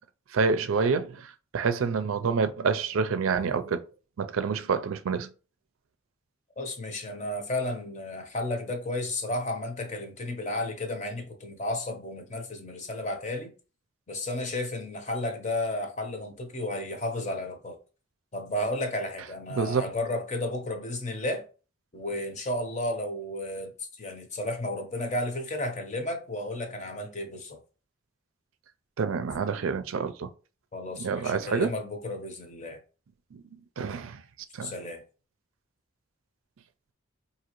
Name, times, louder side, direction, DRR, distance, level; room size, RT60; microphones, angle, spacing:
voice 1, 0.3-3.8 4.2-5.3 19.5-19.9 29.0-30.3 30.9-31.7 33.3-33.4 33.8-34.2 34.5-34.7, right 5 dB, 85° right, 0.4 m, -27 dB
voice 2, 6.6-13.5 14.1-17.8 18.3-21.4 21.9-27.6 30.7-32.8 34.6-35.0, left 1 dB, 35° left, 0.7 m, -33 dB
4.8 x 2.8 x 3.0 m
head